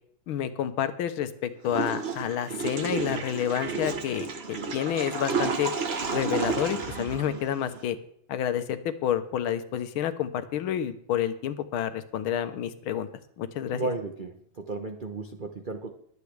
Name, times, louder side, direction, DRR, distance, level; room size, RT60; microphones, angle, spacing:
voice 1, 0.3-5.7 6.1-8.0 8.3-13.1 13.4-13.9, left 10 dB, 85° left, 10 dB, 1.7 m, -29 dB
Water / Toilet flush, 1.7-7.9, right 4 dB, 40° right, 1.0 m, -31 dB
voice 2, 13.7-15.9, right 3 dB, 80° right, 5 dB, 0.4 m, -34 dB
21.5 x 8.4 x 3.3 m, 0.68 s
omnidirectional pair, 2.3 m